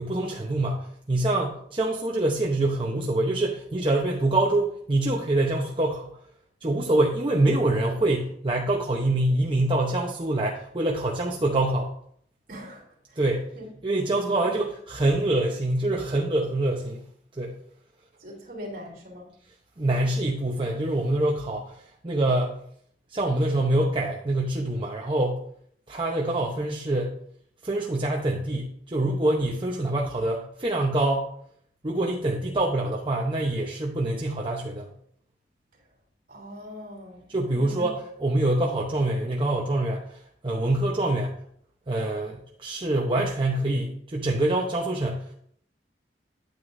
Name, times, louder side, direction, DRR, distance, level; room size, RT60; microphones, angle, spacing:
voice 1, 0.0-6.2 6.6-11.9 13.1-13.5 13.8-17.1 17.3-17.6 19.8-22.6 23.1-25.4 25.9-27.2 27.6-31.3 31.8-34.9 37.3-41.3 41.9-45.3, right 2 dB, 30° right, -1 dB, 0.9 m, -25 dB
voice 2, 12.5-13.2 13.5-13.7 14.4-14.6 18.2-19.3 36.3-37.2 37.5-37.9, equal, 55° right, -1 dB, 3.3 m, -41 dB
9.3 x 9.2 x 2.6 m, 0.65 s
head